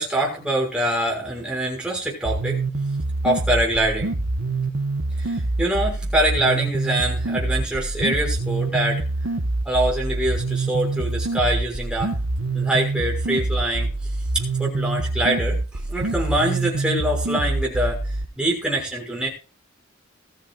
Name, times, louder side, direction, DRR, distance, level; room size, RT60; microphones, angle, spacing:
voice 1, 0.0-2.6 3.2-4.1 5.2-9.0 9.6-12.2 12.5-13.9 14.3-18.0 18.4-19.3, right 1 dB, 5° right, -1 dB, 6.3 m, -24 dB
sound 1, 2.2-18.2, right 2 dB, 70° right, 1.2 m, -25 dB
20.5 x 14.5 x 2.5 m, 0.32 s
head